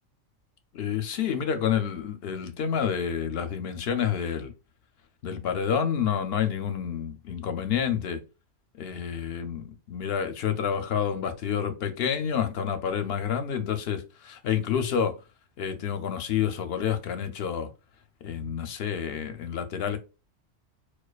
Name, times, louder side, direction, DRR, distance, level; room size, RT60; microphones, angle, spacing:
voice 1, 0.7-4.5 5.2-8.2 8.8-15.1 15.6-17.7 18.2-20.0, left 8 dB, 65° left, 0.7 m, -29 dB
4.5 x 2.2 x 2.3 m
omnidirectional pair, 1.2 m